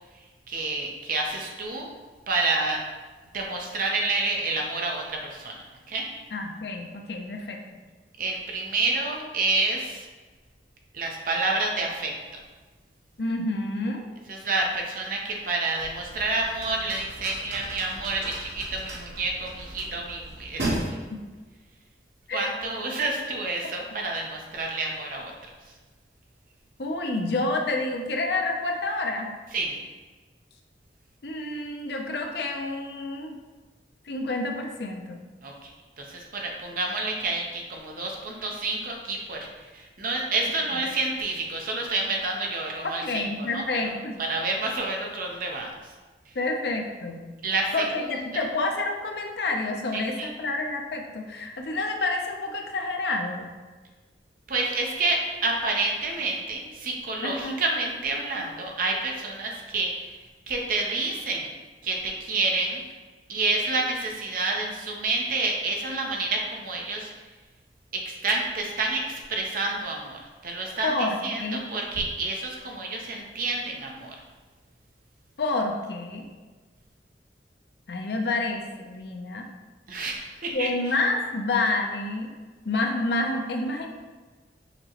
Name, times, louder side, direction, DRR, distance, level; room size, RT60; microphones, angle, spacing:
voice 1, 0.5-1.9 2.3-2.8 3.3-5.6 5.9-6.1 8.2-10.1 10.9-12.1 14.3-20.8 22.3-25.3 29.5-29.8 35.4-35.7 36.0-39.4 39.7-43.3 43.5-43.9 44.2-45.7 47.4-48.4 49.9-50.3 54.5-60.2 60.5-61.5 61.8-62.8 63.3-67.1 67.9-74.2 79.9-80.7, right 3 dB, 50° right, 0 dB, 0.7 m, -29 dB
voice 2, 6.3-7.6 13.2-14.1 21.1-21.2 22.3-22.5 26.8-29.3 31.2-33.4 34.1-35.2 40.7-40.8 43.0-44.2 46.3-47.2 47.7-53.5 57.2-57.6 70.8-71.6 75.4-76.2 77.9-79.5 80.5-82.3 82.6-83.9, left 2 dB, 65° left, 2 dB, 0.6 m, -29 dB
sound 1, 15.8-20.8, right 2 dB, 75° right, 1.0 m, -36 dB
5.9 x 2.9 x 2.9 m, 1.3 s
head